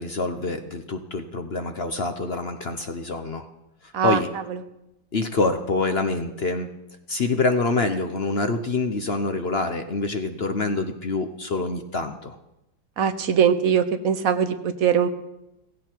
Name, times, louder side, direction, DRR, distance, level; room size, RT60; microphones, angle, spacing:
voice 1, 0.0-3.4 3.8-4.3 5.1-6.7 7.1-12.4, left 3 dB, 50° left, 7 dB, 0.7 m, -26 dB
voice 2, 3.9-4.6 13.0-15.1, right 8 dB, 55° right, 10 dB, 1.1 m, -22 dB
16.0 x 16.0 x 4.6 m, 0.89 s
omnidirectional pair, 2.2 m